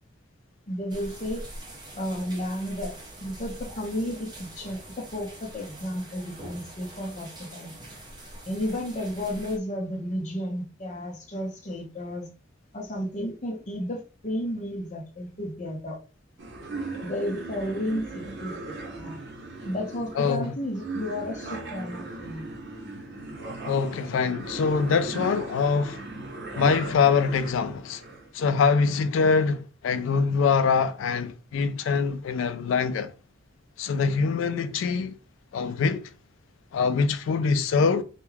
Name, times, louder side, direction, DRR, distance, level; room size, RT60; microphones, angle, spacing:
voice 1, 0.7-1.4 1.9-2.9 3.2-7.7 8.5-12.3 12.7-16.0 17.0-19.2 19.6-22.4, equal, 40° left, 0.7 m, -32 dB
sound 1, 0.9-9.6, right 1 dB, 20° right, 0.7 m, -44 dB
sound 2, 16.4-28.3, right 2 dB, 65° right, 0.8 m, -38 dB
voice 2, 20.2-20.5 23.7-26.0 26.6-28.0 28.3-33.1 33.8-35.2 35.5-36.1 36.7-38.0, left 5 dB, 75° left, 0.3 m, -24 dB
2.3 x 2.2 x 3.1 m
head